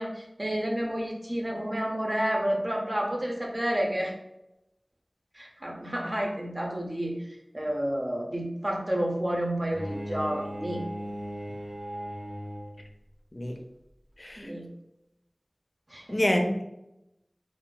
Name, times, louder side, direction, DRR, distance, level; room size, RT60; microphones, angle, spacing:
voice 1, 0.0-4.2 5.3-10.8 14.4-14.7 15.9-16.2, right 1 dB, 40° right, 0 dB, 0.6 m, -30 dB
Bowed string instrument, 9.7-12.9, equal, 75° right, 0.8 m, -37 dB
voice 2, 14.2-14.5 16.1-16.6, left 1 dB, 45° left, 3 dB, 0.5 m, -27 dB
2.5 x 2.0 x 3.7 m, 0.89 s
wide cardioid pair, 40°, 0 cm